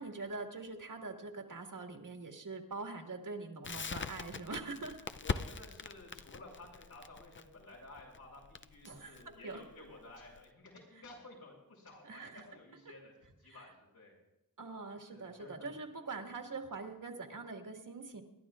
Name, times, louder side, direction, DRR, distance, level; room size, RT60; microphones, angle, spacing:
voice 1, 0.0-5.0 8.8-9.6 12.0-12.4 12.9-13.0 13.5-13.7 14.6-18.2, right 3 dB, 60° right, 3 dB, 2.0 m, -44 dB
Crackle, 3.6-10.5, left 6 dB, 35° left, 0.5 m, -42 dB
voice 2, 5.2-13.1 13.4-14.1 15.1-15.7 16.1-16.3, left 2 dB, 85° left, -5 dB, 6.5 m, -54 dB
28.0 x 11.5 x 2.5 m, 0.90 s
cardioid pair, 55°, 36 cm